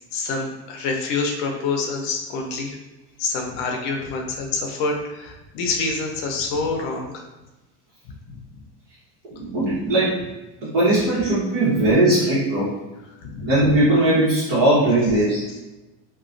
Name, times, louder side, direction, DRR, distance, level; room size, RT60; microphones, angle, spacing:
voice 1, 0.1-2.8 3.2-7.2 13.2-13.6, left 4 dB, 50° left, 2 dB, 0.6 m, -26 dB
voice 2, 9.4-10.1 10.6-12.7 13.4-15.4, right 1 dB, 60° right, -10 dB, 1.3 m, -19 dB
2.9 x 2.4 x 2.5 m, 1.0 s
cardioid pair, 160°, 37 cm